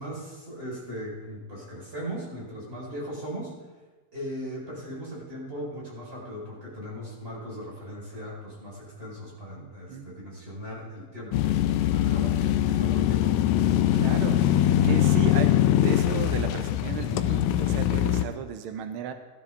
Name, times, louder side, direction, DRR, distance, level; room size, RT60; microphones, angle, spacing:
voice 1, 0.0-3.5 4.1-11.6 11.9-13.4, equal, 20° right, -5 dB, 5.5 m, -38 dB
voice 2, 9.6-10.1 13.9-19.1, right 8 dB, 85° right, 7 dB, 1.2 m, -35 dB
sound 1, 11.3-18.2, left 11 dB, 80° left, 1.9 m, -22 dB
18.0 x 12.5 x 3.8 m, 1.3 s
omnidirectional pair, 3.4 m